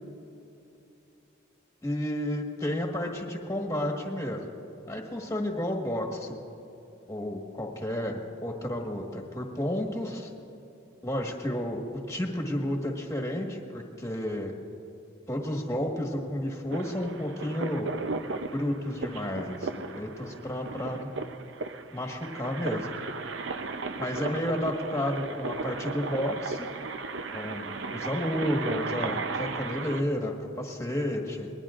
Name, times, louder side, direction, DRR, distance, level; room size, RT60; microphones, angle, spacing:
voice 1, 1.8-4.5 4.9-6.4 7.1-10.3 11.0-11.8 12.1-14.5 15.3-18.0 18.5-21.1 21.9-22.9 24.0-26.7 27.3-31.5, left 1 dB, 15° left, 1 dB, 1.5 m, -31 dB
sound 1, 16.7-30.0, right 3 dB, 70° right, 0.6 m, -36 dB
27.0 x 21.0 x 2.5 m, 2.7 s
head